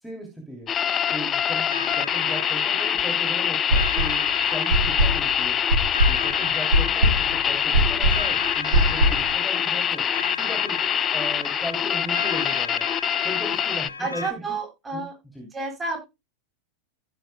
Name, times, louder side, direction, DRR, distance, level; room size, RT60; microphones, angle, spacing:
voice 1, 0.0-0.7 1.1-5.6 6.1-10.1 10.3-10.9 11.1-12.9 13.2-14.4 14.9-15.0 15.3-15.5, equal, ahead, 2 dB, 2.7 m, -37 dB
sound 1, 0.7-13.9, left 9 dB, 25° left, 0.4 m, -25 dB
sound 2, 1.7-14.3, left 4 dB, 80° left, 1.0 m, -36 dB
sound 3, 3.7-4.3 4.7-9.3, equal, 65° right, 1.3 m, -21 dB
voice 2, 14.0-15.1 15.4-16.1, right 3 dB, 15° right, 2 dB, 5.2 m, -30 dB
15.5 x 6.0 x 2.2 m, 0.23 s
figure-of-eight pair, 90°, 0 cm